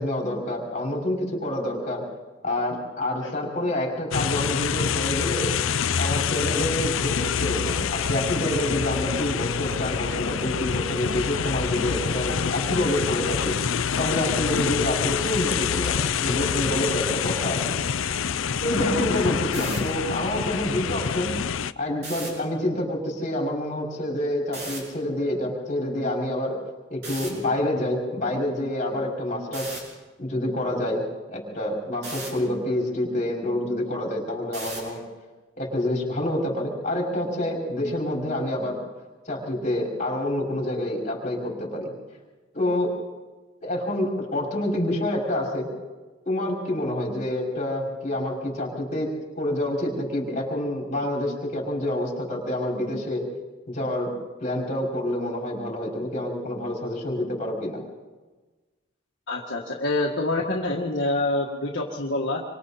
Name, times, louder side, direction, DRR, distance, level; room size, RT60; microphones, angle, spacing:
voice 1, 0.0-2.1 2.4-5.5 6.0-13.5 14.0-18.2 18.6-21.3 21.8-26.6 26.9-29.9 30.2-31.0 31.3-35.0 35.6-38.8 39.3-41.9 42.5-43.0 43.6-45.7 46.3-49.1 49.4-53.3 53.7-54.1 54.4-57.8, left 1 dB, 40° left, -2 dB, 5.5 m, -27 dB
sound 1, 4.1-21.7, left 7 dB, 85° left, 0.6 m, -26 dB
sound 2, 19.5-19.8 22.0-22.3 24.5-24.8 27.0-27.3 29.5-29.8 32.0-32.3 34.5-34.9, right 2 dB, 55° right, 7.3 m, -35 dB
voice 2, 59.3-62.4, left 2 dB, 65° left, -2 dB, 1.8 m, -26 dB
27.5 x 24.5 x 4.3 m, 1.3 s
head